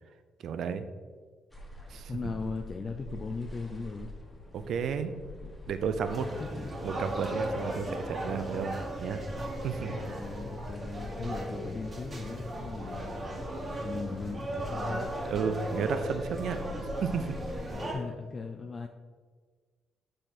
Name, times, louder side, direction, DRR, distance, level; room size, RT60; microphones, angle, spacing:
voice 1, 0.4-0.9 1.9-2.1 4.5-5.1 5.7-6.3 6.8-9.2 9.6-10.0 15.3-16.6 17.0-17.3, right 6 dB, 70° right, 10 dB, 0.5 m, -32 dB
sound 1, 1.5-17.7, left 1 dB, 5° left, 1.8 m, -46 dB
voice 2, 2.1-4.1 6.2-6.7 9.3-9.6 9.9-15.1 17.7-18.9, left 4 dB, 35° left, 4 dB, 0.5 m, -38 dB
sound 2, 6.0-17.9, right 1 dB, 35° right, 2.0 m, -37 dB
6.2 x 5.0 x 4.4 m, 1.5 s
cardioid pair, 90°, 0 cm